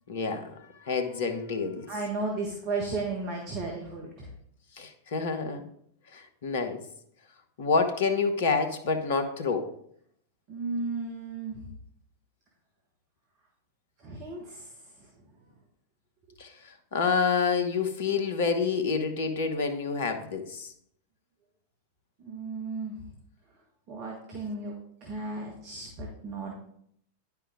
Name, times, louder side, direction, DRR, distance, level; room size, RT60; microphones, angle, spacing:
voice 1, 0.1-1.9 4.8-5.7 6.1-6.8 7.6-9.7 16.4-20.7, left 5 dB, 55° left, 8 dB, 1.1 m, -28 dB
voice 2, 1.9-4.3 10.5-11.6 14.0-14.7 15.0-15.1 22.2-23.0 23.9-24.8 25.0-26.5, right 3 dB, 40° right, 0 dB, 1.5 m, -34 dB
10.0 x 5.8 x 3.6 m, 0.69 s
figure-of-eight pair, 90°, 0 cm